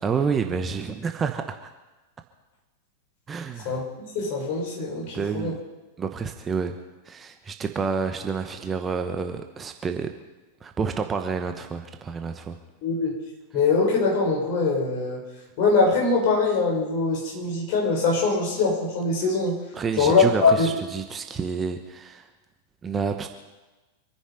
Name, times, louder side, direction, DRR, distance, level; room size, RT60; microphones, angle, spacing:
voice 1, 0.0-1.7 3.3-3.8 5.1-5.5 6.0-6.8 7.1-10.1 10.6-12.6 19.7-22.3 22.8-23.3, right 5 dB, 20° right, 6 dB, 1.1 m, -29 dB
voice 2, 4.1-5.5 12.8-13.1 13.5-15.2 15.6-19.5 20.0-20.7, left 4 dB, 45° left, -1 dB, 6.5 m, -22 dB
26.0 x 10.0 x 5.2 m, 1.2 s
figure-of-eight pair, 90°, 0 cm